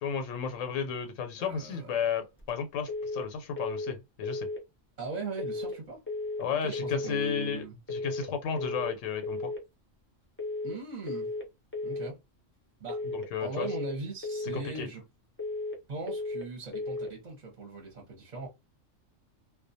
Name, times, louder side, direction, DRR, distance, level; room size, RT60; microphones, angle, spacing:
voice 1, 0.0-4.5 6.4-7.6 7.9-9.5 13.0-13.7 14.5-14.9, left 7 dB, 85° left, 0.9 m, -33 dB
voice 2, 1.4-2.3 5.0-6.0 6.5-7.8 10.6-11.3 11.8-12.2 12.8-13.0 13.4-15.0 15.9-18.5, right 3 dB, 40° right, 0.8 m, -39 dB
sound 1, 2.9-3.3 3.6-4.0 4.2-4.6 5.4-5.8 6.1-6.5 6.7-7.1 7.9-8.3 8.6-9.0 9.2-9.6 10.4-10.8 11.1-11.5 11.7-12.1 12.9-13.3 13.6-14.0 14.2-14.6 15.4-15.8 16.1-16.5 16.7-17.1, left 2 dB, 20° left, 0.3 m, -34 dB
2.3 x 2.1 x 2.6 m
omnidirectional pair, 1.3 m